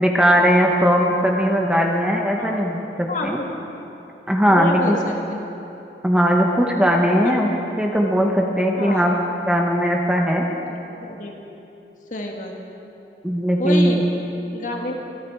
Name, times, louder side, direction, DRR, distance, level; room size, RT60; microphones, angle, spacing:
voice 1, 0.0-3.4 4.3-5.0 6.0-7.5 7.8-9.1 9.5-10.4 13.2-14.0, equal, 5° right, 0 dB, 1.0 m, -19 dB
voice 2, 4.5-5.5 7.2-7.3 8.7-9.1 10.7-11.3 12.1-12.5 13.6-14.1 14.5-15.0, left 1 dB, 45° left, 1 dB, 1.5 m, -29 dB
26.0 x 9.5 x 4.7 m, 2.9 s
head